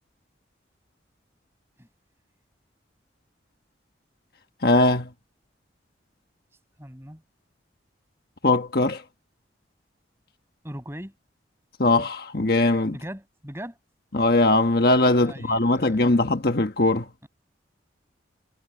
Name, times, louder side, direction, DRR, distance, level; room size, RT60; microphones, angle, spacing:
voice 1, 4.6-5.1 8.4-9.0 11.8-12.9 14.1-17.0, left 2 dB, 55° left, 1.3 m, -20 dB
voice 2, 6.8-7.2 10.6-11.1 12.9-13.8 15.2-16.1 17.2-17.3, equal, 15° right, 6.5 m, -39 dB
head